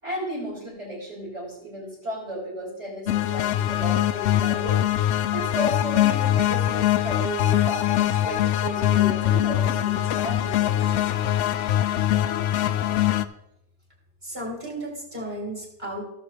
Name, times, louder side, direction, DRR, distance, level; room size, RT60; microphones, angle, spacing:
voice 1, 0.0-10.8, right 1 dB, 80° right, -11 dB, 5.5 m, -34 dB
sound 1, 3.1-13.2, left 12 dB, 85° left, 0.9 m, -23 dB
voice 2, 14.2-16.1, right 1 dB, 40° right, -2 dB, 4.1 m, -34 dB
18.5 x 6.9 x 3.4 m, 0.84 s
omnidirectional pair, 1.2 m